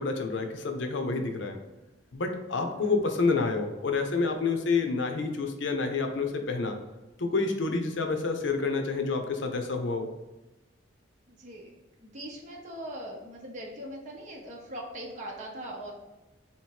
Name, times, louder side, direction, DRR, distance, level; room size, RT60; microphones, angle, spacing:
voice 1, 0.0-1.6 2.1-6.8 7.2-10.1, left 4 dB, 85° left, 5 dB, 0.7 m, -28 dB
voice 2, 11.3-11.7 12.0-15.9, right 1 dB, 40° right, -2 dB, 0.8 m, -41 dB
3.5 x 2.9 x 4.6 m, 1.1 s
head